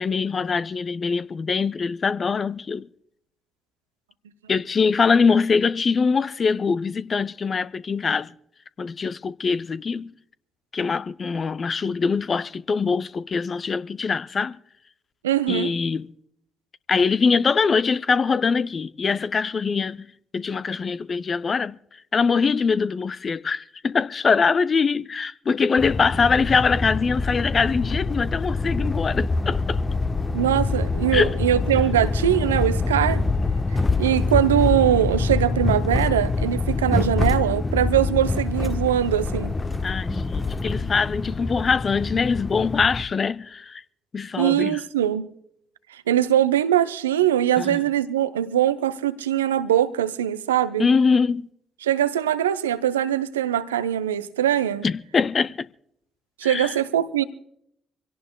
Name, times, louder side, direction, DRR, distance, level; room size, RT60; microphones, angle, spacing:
voice 1, 0.0-2.9 4.5-8.3 8.8-10.1 10.7-14.6 15.5-16.1 16.9-20.1 20.3-21.8 22.1-29.8 31.1-31.3 39.8-43.8 44.1-44.8 47.6-47.8 50.8-51.5 54.8-55.7 56.4-56.7, left 5 dB, 40° left, 0.5 m, -23 dB
voice 2, 15.2-15.7 30.3-33.2 34.0-39.6 44.4-45.3 45.9-50.9 51.8-54.9 56.4-57.2, right 11 dB, 80° right, 0.5 m, -22 dB
sound 1, 25.8-43.0, left 3 dB, 25° left, 0.9 m, -25 dB
26.0 x 17.5 x 2.3 m
figure-of-eight pair, 40°, 0 cm